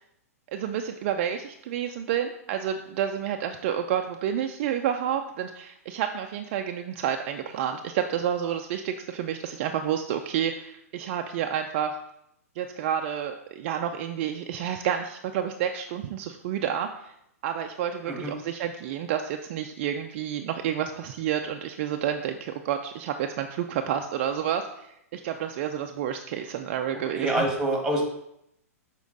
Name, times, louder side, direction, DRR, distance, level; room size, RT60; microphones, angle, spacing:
voice 1, 0.5-12.0 12.6-17.1 17.4-27.5, right 9 dB, 45° right, 5 dB, 0.4 m, -30 dB
voice 2, 27.1-28.0, right 1 dB, 5° right, 1 dB, 1.8 m, -26 dB
7.0 x 4.5 x 4.0 m, 0.79 s
figure-of-eight pair, 110°, 8 cm